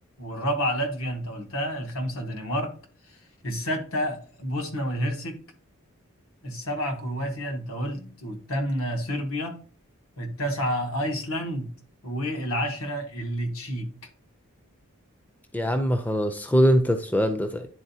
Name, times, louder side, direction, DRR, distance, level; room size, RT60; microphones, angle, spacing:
voice 1, 0.2-2.7 3.4-5.4 6.4-9.6 10.2-11.7 12.0-13.9, equal, 75° left, 3 dB, 1.4 m, -29 dB
voice 2, 15.5-17.7, equal, 5° left, 7 dB, 0.4 m, -22 dB
10.0 x 3.9 x 2.7 m, 0.41 s
head